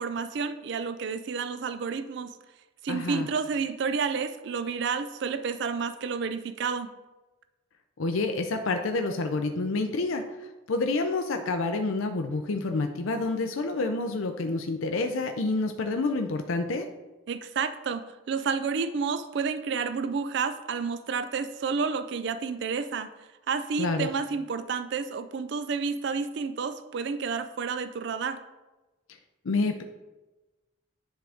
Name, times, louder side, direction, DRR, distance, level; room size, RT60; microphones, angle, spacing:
voice 1, 0.0-2.3 2.8-6.9 17.3-18.0 18.3-23.1 23.5-28.4, right 5 dB, 55° right, 11 dB, 0.3 m, -30 dB
voice 2, 2.9-3.3 8.0-10.2 10.7-16.9 23.8-24.1 29.4-29.8, left 3 dB, 75° left, 5 dB, 0.5 m, -28 dB
10.0 x 3.8 x 3.5 m, 1.1 s
head